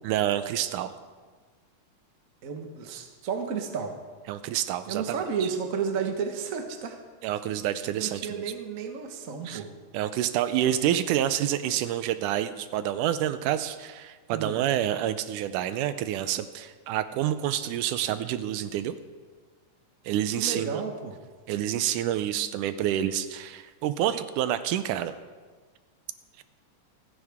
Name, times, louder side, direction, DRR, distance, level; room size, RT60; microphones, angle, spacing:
voice 1, 0.0-1.0 4.3-5.2 5.4-5.5 7.2-8.4 9.5-9.6 9.9-19.0 20.1-20.8 21.5-25.1 26.4-26.5, right 11 dB, 80° right, 12 dB, 2.1 m, -28 dB
voice 2, 2.4-4.0 4.9-7.0 7.9-9.7 14.3-14.6 20.4-21.2, right 6 dB, 55° right, 3 dB, 0.9 m, -32 dB
27.0 x 10.0 x 3.6 m, 1.4 s
omnidirectional pair, 3.7 m